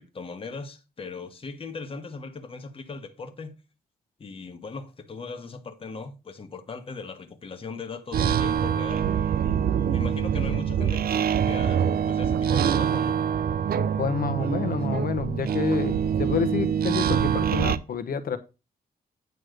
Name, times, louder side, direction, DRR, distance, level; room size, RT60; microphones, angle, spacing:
voice 1, 0.0-3.6 4.2-9.1 9.8-13.2, left 4 dB, 35° left, 1.1 m, -38 dB
sound 1, 8.1-17.8, right 8 dB, 70° right, 0.5 m, -25 dB
voice 2, 14.0-18.4, left 6 dB, 65° left, 1.1 m, -28 dB
9.3 x 3.2 x 6.5 m
cardioid pair, 115°, 16 cm